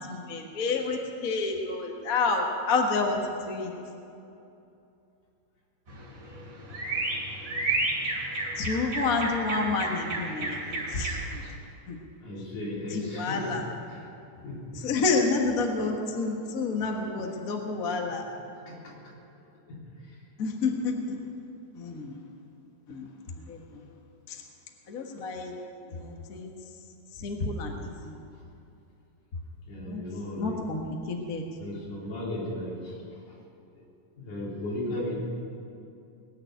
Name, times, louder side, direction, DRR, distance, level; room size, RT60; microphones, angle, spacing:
voice 1, 0.1-3.7 8.6-11.4 11.9-12.0 12.9-13.6 14.7-18.2 20.4-21.2 21.7-22.2 22.9-23.8 24.3-24.4 24.9-25.5 25.9-26.6 27.1-28.1 29.8-30.0 30.4-31.5, left 3 dB, 40° left, 1 dB, 1.2 m, -29 dB
sound 1, 5.9-11.5, right 2 dB, 35° right, 3.5 m, -32 dB
voice 2, 12.2-14.0 14.4-14.9 18.1-18.2 18.7-19.0 19.7-20.2 29.7-30.6 31.6-33.4 34.2-35.1, left 1 dB, 75° left, -6 dB, 5.4 m, -36 dB
20.5 x 7.0 x 9.2 m, 2.7 s
omnidirectional pair, 3.7 m